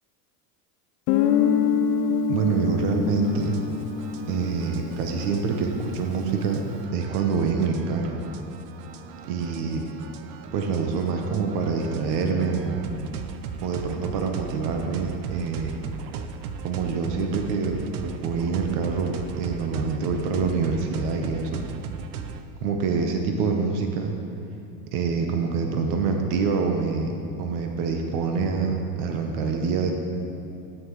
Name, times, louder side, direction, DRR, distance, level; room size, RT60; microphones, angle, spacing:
Guitar, 1.1-5.6, left 7 dB, 85° left, 0.7 m, -25 dB
voice 1, 2.3-3.6 4.3-6.6 6.9-8.2 9.3-9.9 10.5-12.8 13.6-15.8 16.6-21.6 22.6-24.1 24.9-27.1 27.4-29.9, right 5 dB, 60° right, 3 dB, 1.1 m, -26 dB
sound 1, 3.2-22.4, right 7 dB, 85° right, 0.8 m, -38 dB
13.0 x 9.0 x 3.2 m, 2.7 s
supercardioid pair, 130°, 47 cm